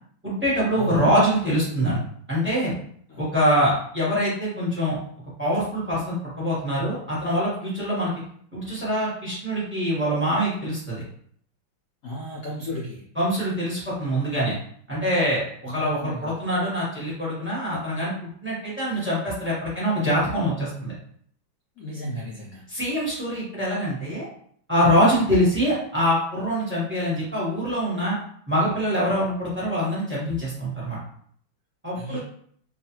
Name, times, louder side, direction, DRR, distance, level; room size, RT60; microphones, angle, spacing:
voice 1, 0.2-2.0 2.3-2.8 3.2-5.0 5.4-8.1 8.5-11.0 13.2-14.6 14.9-20.9 22.7-24.3 24.7-28.2 28.5-31.0 31.8-32.2, equal, 10° right, -7 dB, 0.5 m, -24 dB
voice 2, 0.7-1.1 3.1-3.2 12.0-13.1 15.7-16.4 21.8-22.6 31.9-32.2, left 1 dB, 80° left, -4 dB, 0.8 m, -34 dB
3.1 x 2.4 x 2.8 m, 0.63 s
omnidirectional pair, 2.2 m